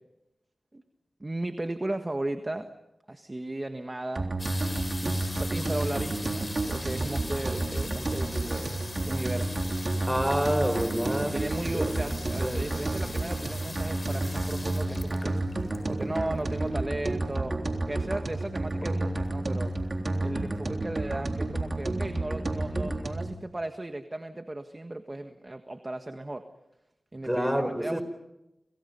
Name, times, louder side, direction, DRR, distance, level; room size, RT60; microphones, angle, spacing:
voice 1, 1.2-2.7 3.1-4.3 5.0-9.7 11.1-15.4 15.9-17.6 17.9-19.7 20.2-26.5 27.1-28.0, right 2 dB, 30° right, 7 dB, 1.6 m, -36 dB
sound 1, 4.2-23.3, right 2 dB, 50° right, 3.7 m, -30 dB
sound 2, 4.4-16.9 17.8-17.9 18.0-18.4 18.8-19.3 19.9-20.0 20.2-20.3, left 2 dB, 35° left, 7.4 m, -41 dB
voice 2, 10.1-12.0 12.4-12.7 27.2-28.0, equal, 10° right, 11 dB, 4.4 m, -28 dB
29.0 x 28.0 x 5.6 m, 0.93 s
cardioid pair, 45°, 0 cm